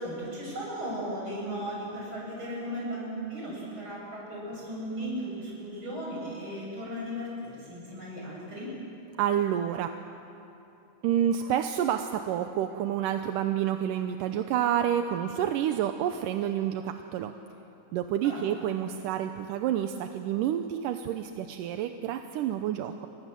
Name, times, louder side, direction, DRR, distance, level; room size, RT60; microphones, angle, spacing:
voice 1, 0.0-8.7 18.2-18.5, equal, 35° right, -4 dB, 8.7 m, -36 dB
voice 2, 9.2-9.9 11.0-17.3 17.9-23.1, right 10 dB, 80° right, 7 dB, 2.4 m, -29 dB
30.0 x 23.5 x 7.6 m, 2.9 s
omnidirectional pair, 3.8 m